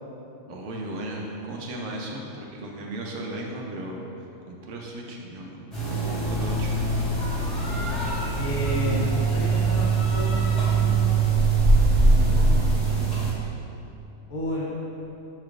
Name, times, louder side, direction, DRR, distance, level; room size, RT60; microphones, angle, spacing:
voice 1, 0.5-4.0 4.5-6.7, right 1 dB, 80° right, -1 dB, 0.9 m, -36 dB
sound 1, 5.7-13.3, right 6 dB, ahead, 1.3 m, -24 dB
sound 2, 6.2-12.6, equal, 45° right, 0.7 m, -25 dB
voice 2, 8.4-13.2 14.3-14.8, left 1 dB, 60° left, -5 dB, 1.0 m, -33 dB
5.6 x 3.2 x 2.4 m, 2.9 s
omnidirectional pair, 1.3 m